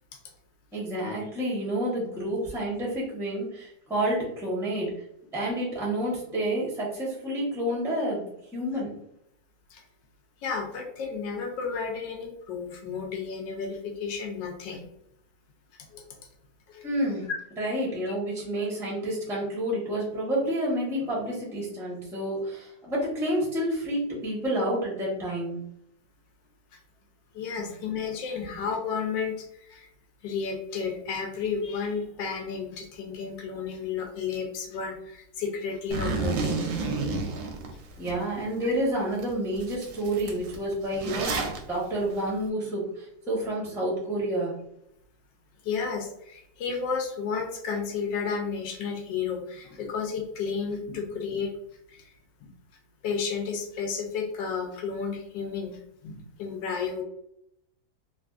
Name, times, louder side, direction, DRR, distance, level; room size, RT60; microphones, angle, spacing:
voice 1, 0.7-5.0 5.3-8.3 8.5-8.9 16.8-17.3 17.6-25.6 38.0-44.5, right 1 dB, 5° right, -5 dB, 0.4 m, -29 dB
voice 2, 10.4-14.9 15.9-16.1 16.7-16.9 27.3-29.9 30.2-36.8 38.6-38.7 43.2-43.3 45.6-51.5 51.9-52.1 52.4-52.5 53.0-57.0, left 5 dB, 80° left, 2 dB, 1.3 m, -32 dB
Zipper (clothing), 35.9-38.1 38.6-38.7 39.2-39.3 39.6-41.6, right 4 dB, 85° right, 1.3 m, -30 dB
3.4 x 2.4 x 2.4 m, 0.77 s
omnidirectional pair, 2.0 m